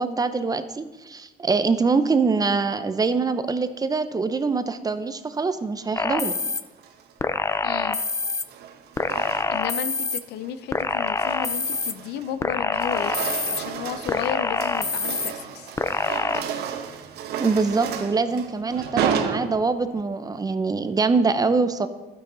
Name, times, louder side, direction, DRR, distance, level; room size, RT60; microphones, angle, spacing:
voice 1, 0.0-6.3 17.4-21.9, right 4 dB, 20° right, 11 dB, 0.7 m, -24 dB
sound 1, 6.0-6.6 7.2-8.4 9.0-10.2 10.7-11.9 12.4-13.6 14.1-15.3 15.8-16.4, left 4 dB, 15° left, 0.5 m, -26 dB
sound 2, 6.6-7.1 8.2-9.8 10.2-10.5 11.0-12.4 12.7-20.0, right 7 dB, 75° right, 1.0 m, -32 dB
voice 2, 7.6-8.0 9.5-15.7, left 9 dB, 80° left, 13 dB, 0.6 m, -33 dB
12.0 x 9.9 x 4.0 m, 1.1 s
cardioid pair, 110°, 17 cm